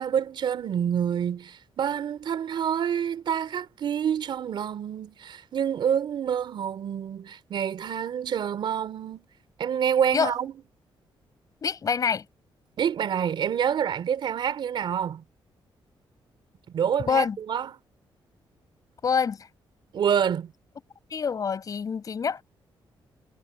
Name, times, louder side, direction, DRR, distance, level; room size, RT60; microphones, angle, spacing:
voice 1, 0.0-9.3 9.6-10.5 12.8-15.2 16.7-17.8 19.9-20.5, right 8 dB, 60° right, 3.6 m, -27 dB
voice 2, 11.6-12.2 17.1-17.4 19.0-19.5 21.1-22.4, left 6 dB, 40° left, 7.6 m, -26 dB
wide cardioid pair, 155°, 9 cm